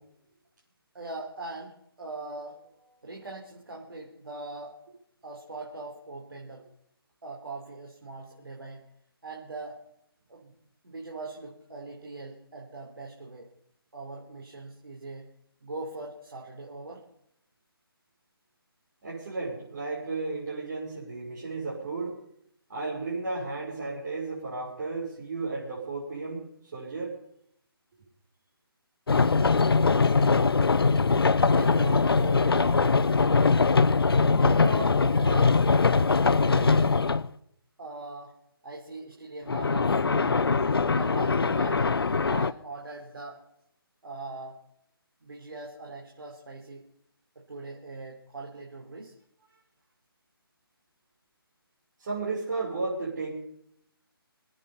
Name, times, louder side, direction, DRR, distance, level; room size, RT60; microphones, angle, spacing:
voice 1, 0.9-1.7 2.0-4.8 5.2-6.6 7.2-8.8 9.2-9.8 10.3-10.5 10.8-13.5 13.9-15.3 15.6-17.0 31.4-32.9 34.4-37.0 37.8-38.3 38.6-40.6 40.9-41.9 42.3-43.4 44.0-44.6 45.2-46.9 47.4-49.1, right 2 dB, 70° right, -1 dB, 3.6 m, -40 dB
voice 2, 19.0-22.2 22.7-26.4 26.7-27.2 52.0-53.3, right 3 dB, 45° right, -7 dB, 5.9 m, -33 dB
sound 1, 29.1-37.3 39.5-42.5, left 4 dB, 70° left, 0.7 m, -22 dB
25.5 x 9.1 x 5.6 m, 0.74 s
figure-of-eight pair, 150°, 13 cm